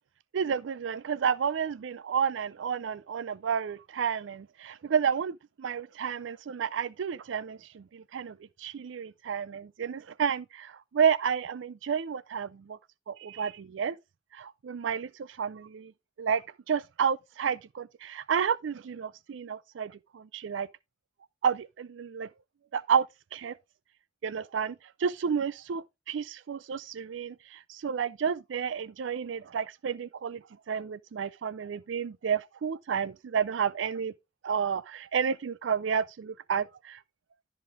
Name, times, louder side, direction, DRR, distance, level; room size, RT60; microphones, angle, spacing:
voice 1, 0.3-12.8 13.1-14.0 14.3-15.9 16.2-16.4 16.7-20.7 21.4-22.3 22.7-23.1 23.3-23.6 24.2-30.4 30.7-34.1 34.4-37.0, right 7 dB, 80° right, 0.4 m, -31 dB
13.0 x 5.2 x 3.5 m
head